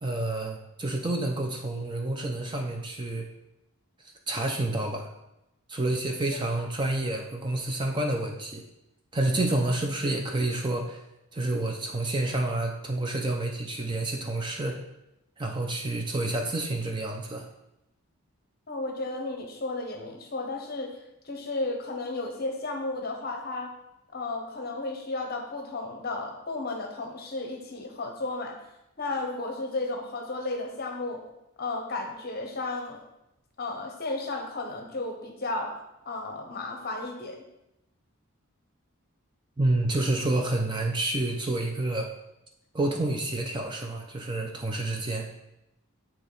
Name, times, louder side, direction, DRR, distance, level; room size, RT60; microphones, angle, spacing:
voice 1, 0.0-3.3 4.3-5.1 5.7-8.6 9.1-11.0 11.3-14.8 15.4-17.5 39.6-42.1 42.7-45.3, right 2 dB, 20° right, 2 dB, 0.4 m, -29 dB
voice 2, 18.7-20.9 21.2-23.7 24.1-28.6 29.0-31.2 31.6-33.0 33.6-35.7 36.1-37.4, left 2 dB, 45° left, 3 dB, 0.8 m, -33 dB
8.2 x 3.0 x 3.9 m, 0.88 s
head